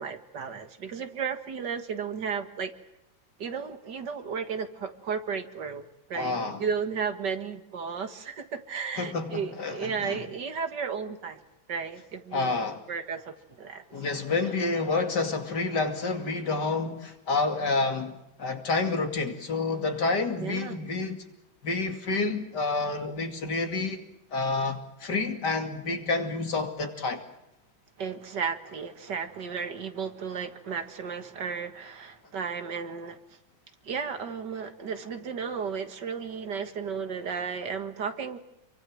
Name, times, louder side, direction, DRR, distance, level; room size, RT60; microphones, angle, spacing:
voice 1, 0.0-2.7 3.4-11.4 11.7-12.6 12.9-13.8 20.4-20.8 28.0-33.2 33.8-38.4, right 6 dB, 65° right, 2.3 m, -34 dB
voice 2, 6.1-6.6 9.0-10.2 12.3-12.8 13.9-21.2 21.6-24.0 24.3-27.2, left 3 dB, 60° left, 3.1 m, -29 dB
27.5 x 24.0 x 7.7 m
omnidirectional pair, 2.1 m